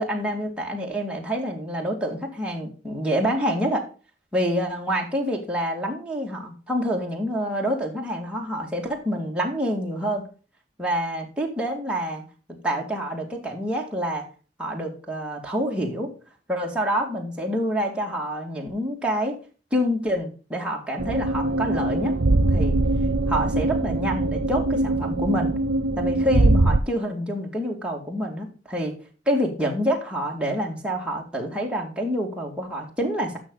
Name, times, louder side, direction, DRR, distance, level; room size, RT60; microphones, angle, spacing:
voice 1, 0.0-3.8 4.3-10.2 10.8-12.2 12.6-14.3 14.6-16.1 16.5-19.4 19.7-22.1 22.5-22.8 23.3-25.5 26.0-28.9 29.3-33.4, equal, 5° right, -1 dB, 2.2 m, -27 dB
sound 1, 21.0-26.8, right 2 dB, 90° right, 0.6 m, -22 dB
12.0 x 6.3 x 4.0 m, 0.36 s
head